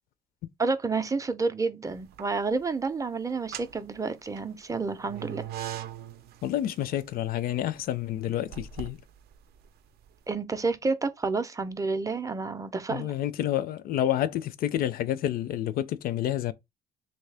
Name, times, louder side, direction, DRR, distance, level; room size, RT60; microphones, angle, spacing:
voice 1, 0.6-5.4 10.3-13.1, right 4 dB, 20° right, 0.4 m, -29 dB
sound 1, 1.9-2.6 3.3-10.2, right 10 dB, 70° right, 0.5 m, -42 dB
voice 2, 6.4-9.0 12.9-16.5, left 12 dB, 60° left, 0.4 m, -29 dB
3.1 x 2.7 x 3.3 m
cardioid pair, 110°, 17 cm